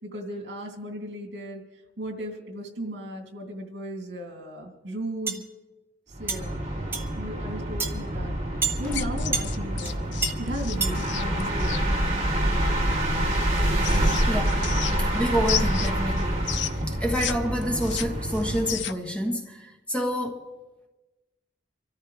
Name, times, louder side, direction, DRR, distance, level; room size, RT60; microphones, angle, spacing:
voice 1, 0.0-1.6 2.0-5.4 6.2-6.5 7.2-8.3 8.8-10.0 10.4-11.9, equal, 75° right, 2.8 m, -36 dB
sound 1, 5.3-5.4 6.3-6.4 6.9-7.1 7.8-7.9 8.6-8.8 9.3-9.5 9.8-9.9 10.2-10.3 10.8-11.0, right 4 dB, 10° right, 1.2 m, -27 dB
sound 2, 6.1-18.8, right 1 dB, 35° right, 2.7 m, -27 dB
sound 3, 8.8-11.8 13.3-15.2 15.4-17.3 17.6-19.1, left 11 dB, 85° left, 0.7 m, -33 dB
voice 2, 13.6-14.6 15.0-20.5, equal, 5° left, 1.3 m, -29 dB
25.0 x 13.5 x 3.4 m
head